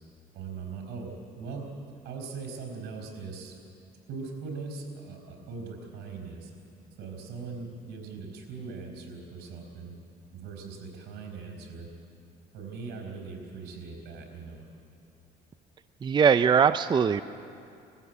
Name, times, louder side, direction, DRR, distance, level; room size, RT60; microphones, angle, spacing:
voice 1, 0.3-1.7 2.0-3.6 4.1-6.5 7.0-9.9 10.3-11.9 12.5-14.7, right 4 dB, 80° right, 2 dB, 4.6 m, -40 dB
voice 2, 16.0-17.2, right 7 dB, 25° right, 12 dB, 0.4 m, -21 dB
21.0 x 15.0 x 8.2 m, 2.5 s
cardioid pair, 110°, 17 cm